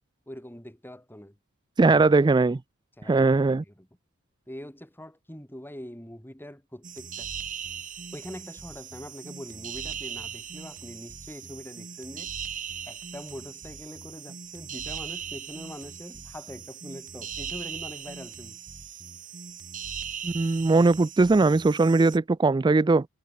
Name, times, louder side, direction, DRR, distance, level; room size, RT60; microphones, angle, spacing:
voice 1, 0.3-1.4 1.8-2.1 3.0-3.9 4.5-7.3 8.1-12.3 12.9-18.6, equal, 10° left, 4.7 m, -43 dB
voice 2, 1.8-2.6 3.1-3.6 20.2-23.1, right 3 dB, 20° right, 0.3 m, -20 dB
sound 1, 6.8-22.2, right 7 dB, 40° right, 2.2 m, -39 dB
head